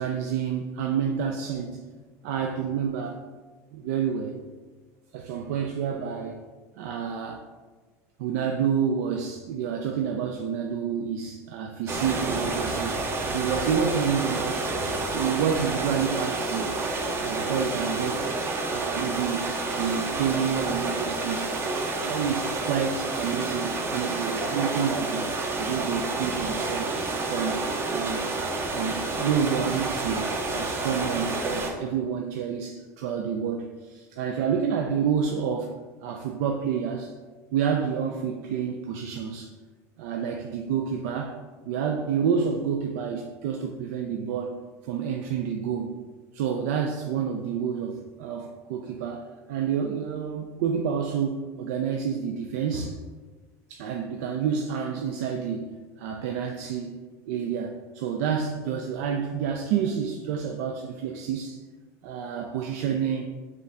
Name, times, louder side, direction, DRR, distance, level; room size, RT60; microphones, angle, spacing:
voice 1, 0.0-1.8 2.2-3.2 3.7-4.4 5.1-6.4 6.8-7.4 8.2-13.0 13.3-14.6 15.1-16.8 17.2-18.3 18.7-19.5 19.8-21.5 22.0-27.0 27.3-28.3 28.8-35.7 36.0-37.1 37.5-39.5 40.0-41.4 41.7-44.6 44.8-45.9 46.3-53.0 53.7-57.0 57.3-61.6 62.0-63.3, right 7 dB, 80° right, 3 dB, 0.4 m, -29 dB
sound 1, 11.9-31.7, right 3 dB, 30° right, 0.6 m, -29 dB
5.2 x 2.6 x 3.2 m, 1.3 s
supercardioid pair, 120°, 8 cm